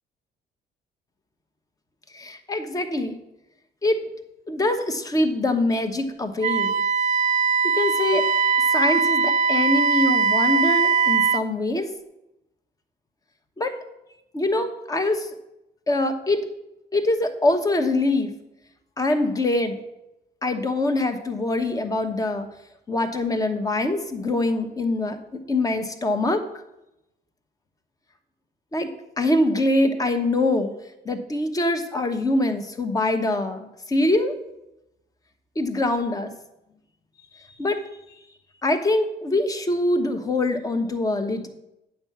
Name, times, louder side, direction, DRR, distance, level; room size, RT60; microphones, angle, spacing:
voice 1, 2.1-3.2 3.8-4.1 4.5-6.8 7.6-8.2 8.7-11.9 13.6-13.7 14.3-15.3 15.9-16.5 16.9-18.3 19.0-19.8 20.4-22.5 22.9-26.4 28.7-28.9 29.2-30.7 31.0-34.3 35.6-36.3 37.6-37.8 38.6-41.5, left 2 dB, 20° left, 7 dB, 1.0 m, -24 dB
Wind instrument woodwind instrument, 6.4-11.5, right 5 dB, 45° right, 0.4 m, -21 dB
8.6 x 4.7 x 7.2 m, 0.90 s
cardioid pair, 110°, 17 cm